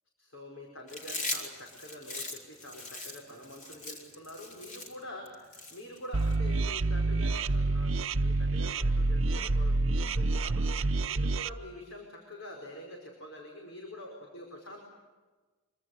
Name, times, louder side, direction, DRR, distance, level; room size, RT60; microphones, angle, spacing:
voice 1, 0.2-9.8 10.1-14.9, left 1 dB, 65° left, 1 dB, 5.2 m, -46 dB
Chewing mastication, 0.9-6.4, left 2 dB, 35° left, 3.8 m, -40 dB
sound 1, 6.1-11.5, right 2 dB, 60° right, 0.8 m, -28 dB
25.5 x 24.5 x 8.1 m, 1.3 s
head